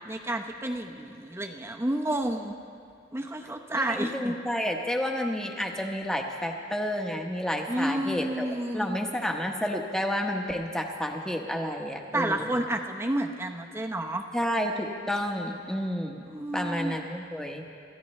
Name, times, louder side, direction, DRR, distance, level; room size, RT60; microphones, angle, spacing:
voice 1, 0.0-2.6 3.1-4.3 7.7-9.0 12.1-14.3 16.3-17.0, right 1 dB, 15° right, 3 dB, 0.8 m, -30 dB
voice 2, 3.7-12.5 14.3-16.3 16.5-17.6, equal, 5° left, 2 dB, 1.1 m, -30 dB
27.5 x 14.5 x 3.2 m, 2.3 s
head